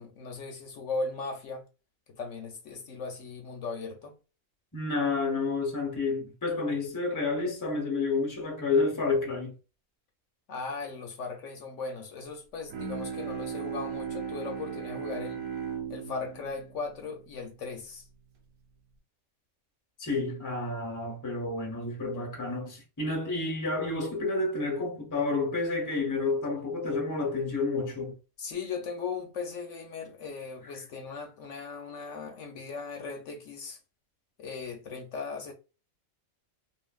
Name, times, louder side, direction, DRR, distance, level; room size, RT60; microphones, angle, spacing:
voice 1, 0.0-1.7 2.1-4.1 10.5-15.4 15.9-18.1 28.4-33.8 34.4-35.5, left 4 dB, 70° left, 0.9 m, -38 dB
voice 2, 4.7-9.5 20.0-28.2, left 3 dB, 20° left, 0.6 m, -30 dB
Bowed string instrument, 12.7-18.1, right 7 dB, 75° right, 1.1 m, -37 dB
2.8 x 2.5 x 2.3 m
omnidirectional pair, 1.4 m